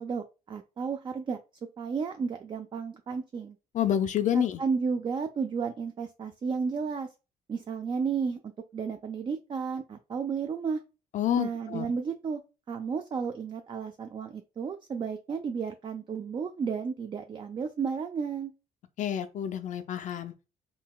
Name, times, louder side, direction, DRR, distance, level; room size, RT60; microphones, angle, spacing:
voice 1, 0.0-1.4 1.8-3.6 4.6-7.1 7.5-10.8 11.3-12.4 12.7-18.5, right 5 dB, 30° right, 0.3 m, -33 dB
voice 2, 3.7-4.6 11.1-11.9 19.0-20.3, left 10 dB, 55° left, 0.4 m, -28 dB
3.8 x 2.2 x 2.2 m
cardioid pair, 80°, 15 cm